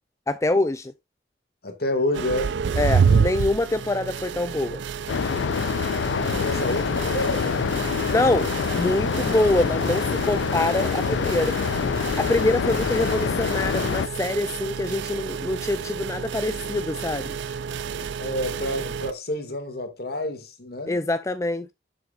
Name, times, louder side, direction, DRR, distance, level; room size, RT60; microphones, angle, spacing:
voice 1, 0.3-0.9 2.8-4.8 8.1-11.6 12.2-17.4 20.9-21.7, left 2 dB, 15° left, 0.4 m, -25 dB
voice 2, 1.6-2.6 3.0-3.3 6.1-8.5 9.0-10.0 18.2-21.0, left 1 dB, 55° left, 2.2 m, -30 dB
sound 1, 2.1-19.1, right 6 dB, 80° right, 0.4 m, -29 dB
sound 2, 5.1-14.1, left 6 dB, 85° left, 0.4 m, -26 dB
9.4 x 7.6 x 2.5 m
head